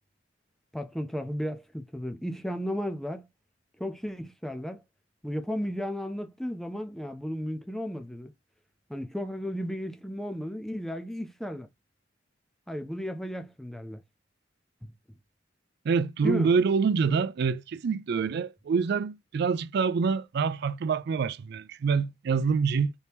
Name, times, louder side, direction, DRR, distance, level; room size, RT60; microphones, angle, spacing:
voice 1, 0.7-3.3 3.8-4.8 5.2-8.3 8.9-11.7 12.7-14.0 14.8-14.9 16.2-16.5, equal, ahead, 0.5 m, -34 dB
voice 2, 15.9-22.9, right 5 dB, 60° right, 0.4 m, -26 dB
4.3 x 2.8 x 3.4 m
head